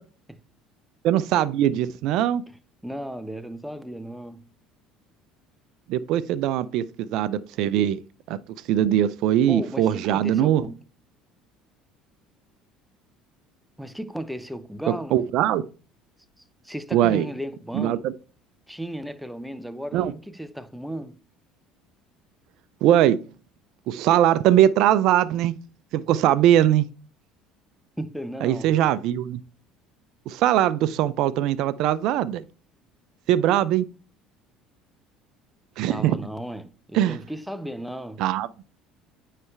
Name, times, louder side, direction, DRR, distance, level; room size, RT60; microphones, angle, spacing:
voice 1, 1.0-2.4 5.9-8.0 8.3-8.4 8.7-10.6 15.1-15.6 16.9-17.2 17.7-18.1 19.9-20.1 22.8-23.2 23.9-25.6 25.9-26.8 28.4-29.4 30.3-32.4 33.3-33.8 35.8-36.1 36.9-37.2 38.2-38.5, right 12 dB, 65° right, 0.4 m, -21 dB
voice 2, 2.8-4.5 9.5-10.8 13.8-15.2 16.6-18.1 18.7-21.2 28.0-28.8 35.9-38.3, right 1 dB, ahead, 0.6 m, -35 dB
9.4 x 3.3 x 3.2 m
hypercardioid pair, 70°, 0 cm